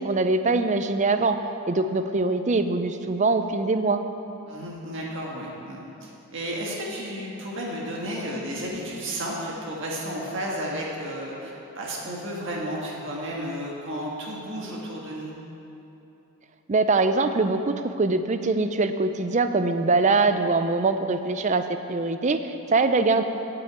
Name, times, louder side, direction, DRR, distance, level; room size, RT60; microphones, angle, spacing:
voice 1, 0.0-1.4 1.7-4.0 16.7-23.2, right 3 dB, 30° right, 9 dB, 0.5 m, -23 dB
voice 2, 4.5-15.3, equal, 55° right, -3 dB, 1.7 m, -33 dB
8.8 x 7.8 x 8.6 m, 2.9 s
head